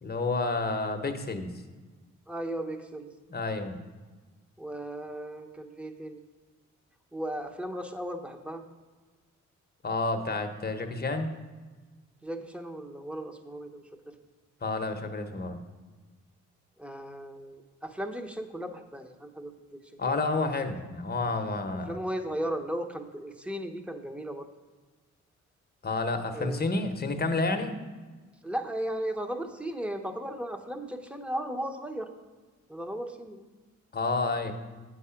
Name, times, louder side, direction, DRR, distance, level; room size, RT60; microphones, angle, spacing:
voice 1, 0.0-1.5 3.3-3.8 9.8-11.3 14.6-15.6 20.0-21.9 25.8-27.8 33.9-34.5, left 3 dB, 30° left, 6 dB, 0.9 m, -30 dB
voice 2, 2.3-3.1 4.6-6.2 7.1-8.6 12.2-14.1 16.8-20.1 21.9-24.5 26.3-26.7 28.4-32.1 32.7-33.4, right 1 dB, 5° right, 6 dB, 0.8 m, -36 dB
8.1 x 4.9 x 5.7 m, 1.3 s
cardioid pair, 80°, 30 cm